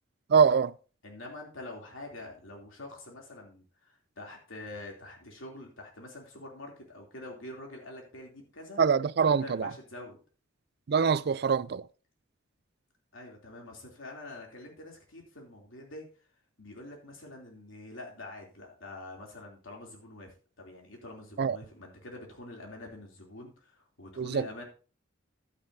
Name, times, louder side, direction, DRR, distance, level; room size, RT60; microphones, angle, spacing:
voice 1, 0.3-0.7 8.8-9.7 10.9-11.9 21.4-21.6 24.2-24.5, right 6 dB, 55° right, 0.4 m, -24 dB
voice 2, 1.0-8.8 9.3-10.2 13.1-16.0 16.6-24.6, left 2 dB, 80° left, 3.0 m, -46 dB
11.5 x 9.6 x 2.7 m
head